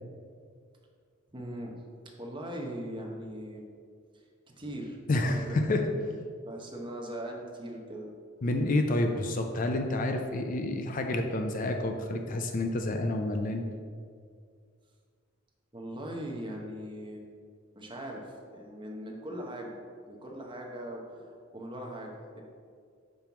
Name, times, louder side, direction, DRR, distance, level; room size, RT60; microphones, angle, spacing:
voice 1, 1.3-1.8 2.2-3.6 4.1-4.2 4.6-5.0 5.2-6.2 6.4-8.1 15.7-17.2 17.8-19.8 20.1-22.4, right 1 dB, 25° right, 0 dB, 0.9 m, -40 dB
voice 2, 5.1-5.8 8.4-13.6, left 2 dB, 40° left, 4 dB, 0.4 m, -29 dB
5.4 x 4.4 x 5.8 m, 2.1 s
head